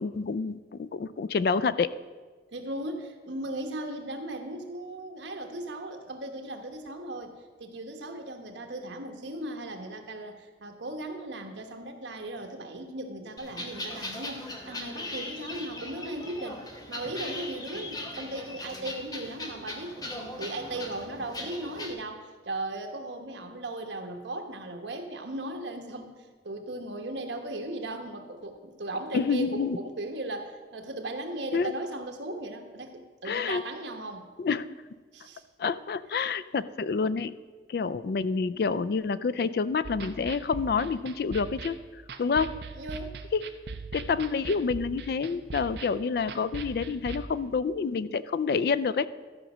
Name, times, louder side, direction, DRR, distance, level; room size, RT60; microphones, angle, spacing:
voice 1, 0.0-1.9 29.1-29.8 31.5-31.7 33.3-33.6 34.4-34.7 35.6-37.3 37.7-41.8 42.2-42.6 43.3-43.4 43.9-49.1, left 5 dB, 55° left, 16 dB, 0.3 m, -28 dB
voice 2, 2.5-7.3 7.6-16.6 16.9-34.3 35.1-35.4 42.7-43.2, right 1 dB, 80° right, 5 dB, 1.2 m, -37 dB
sound 1, 13.4-21.9, left 1 dB, 20° left, 0.9 m, -39 dB
sound 2, 39.8-47.2, right 4 dB, 60° right, 0.6 m, -41 dB
13.0 x 5.2 x 6.0 m, 1.4 s
head